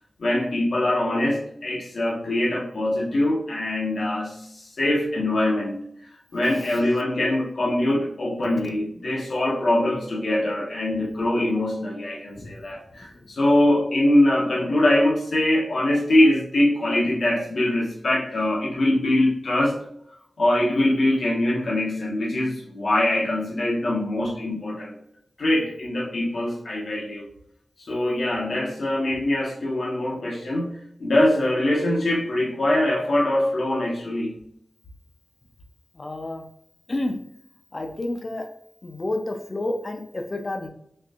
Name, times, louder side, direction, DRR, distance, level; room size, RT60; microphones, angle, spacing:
voice 1, 0.2-5.8 6.3-19.8 20.4-24.9 25.4-27.2 27.8-34.4, left 1 dB, 75° left, -4 dB, 0.9 m, -23 dB
voice 2, 36.0-36.4 36.9-37.1 37.7-38.4 38.8-40.7, left 1 dB, 45° left, 4 dB, 0.6 m, -29 dB
4.3 x 2.5 x 2.4 m, 0.69 s
cardioid pair, 45°, 0 cm